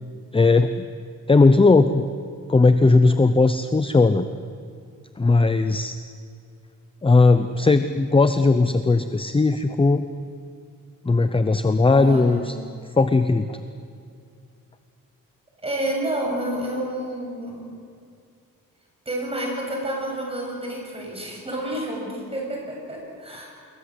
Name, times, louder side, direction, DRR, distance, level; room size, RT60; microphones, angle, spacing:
voice 1, 0.3-0.9 1.3-2.1 2.5-4.3 5.2-6.0 7.0-10.0 11.0-12.5 13.0-13.6, left 3 dB, 15° left, 10 dB, 0.7 m, -18 dB
voice 2, 11.9-12.4 15.6-17.7 19.1-23.5, right 1 dB, 15° right, -1 dB, 7.4 m, -29 dB
27.5 x 22.0 x 8.0 m, 2.4 s
wide cardioid pair, 155°, 33 cm